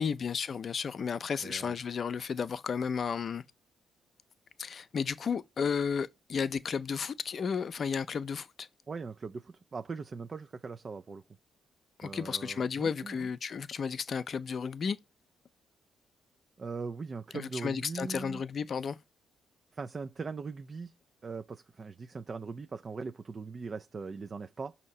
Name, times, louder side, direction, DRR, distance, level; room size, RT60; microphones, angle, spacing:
voice 1, 0.0-3.4 4.6-8.7 12.0-15.0 17.3-19.0, left 6 dB, 50° left, 0.5 m, -33 dB
voice 2, 1.4-1.8 8.9-11.2 12.0-13.3 16.6-18.4 19.7-20.9 21.2-24.8, right 4 dB, 35° right, 0.4 m, -40 dB
6.2 x 2.8 x 5.4 m
cardioid pair, 90°, 0 cm